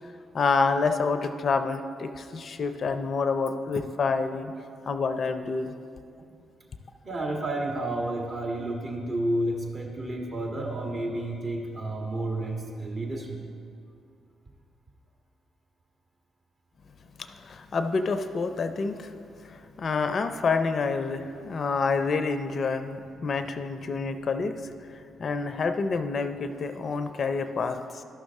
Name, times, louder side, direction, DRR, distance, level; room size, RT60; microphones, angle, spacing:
voice 1, 0.3-4.5 4.9-5.7 17.2-19.1 19.4-24.5 24.9-28.0, left 4 dB, 55° left, 9 dB, 0.5 m, -28 dB
voice 2, 7.0-13.4, right 1 dB, 45° right, 0 dB, 1.7 m, -31 dB
12.0 x 6.2 x 3.6 m, 2.5 s
hypercardioid pair, 45°, 0 cm